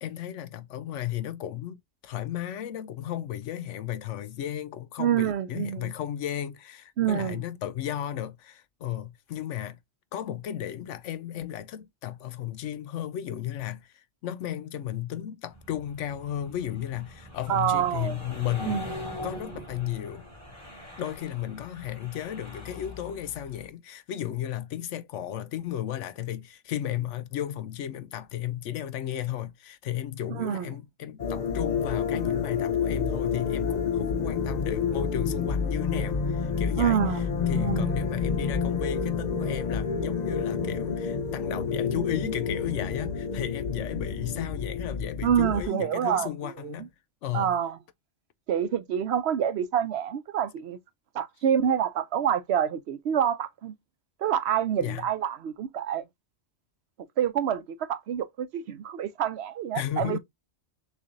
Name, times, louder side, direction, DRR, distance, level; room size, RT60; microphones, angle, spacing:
voice 1, 0.0-9.8 10.1-18.9 19.2-20.2 21.0-46.9 47.2-47.5 54.8-55.0 59.7-60.2, left 11 dB, 80° left, 1.0 m, -34 dB
voice 2, 5.0-5.9 7.0-7.4 17.5-18.2 18.6-19.0 30.3-30.7 36.8-38.0 45.2-46.3 46.6-46.9 47.3-47.8 48.5-50.8 51.1-53.7 54.2-56.0 57.2-60.2, right 9 dB, 65° right, 0.8 m, -27 dB
sound 1, 15.5-23.7, left 1 dB, 15° left, 2.3 m, -42 dB
sound 2, 31.2-45.7, left 6 dB, 50° left, 0.6 m, -29 dB
6.5 x 2.6 x 2.5 m
omnidirectional pair, 1.3 m